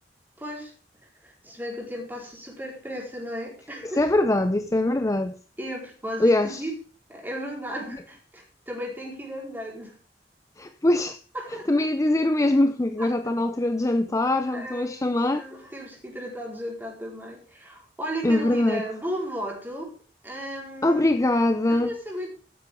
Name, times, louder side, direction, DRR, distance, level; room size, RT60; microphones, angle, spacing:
voice 1, 0.4-0.7 1.2-4.0 5.6-6.7 7.1-9.9 11.3-11.9 13.0-13.1 14.2-19.9 20.2-21.1 21.7-22.3, equal, 10° right, 4.6 m, -35 dB
voice 2, 3.8-5.4 6.2-6.6 10.6-11.2 11.5-15.5 18.2-18.8 20.8-21.9, left 1 dB, 20° left, 0.5 m, -23 dB
13.5 x 9.4 x 3.7 m
head